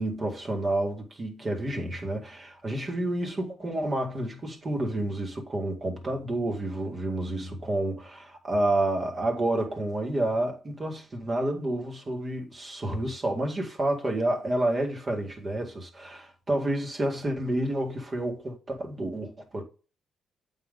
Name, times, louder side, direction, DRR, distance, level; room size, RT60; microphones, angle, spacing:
voice 1, 0.0-19.6, right 1 dB, 35° right, 1.9 m, -29 dB
8.2 x 3.8 x 3.8 m
cardioid pair, 90°, 0 cm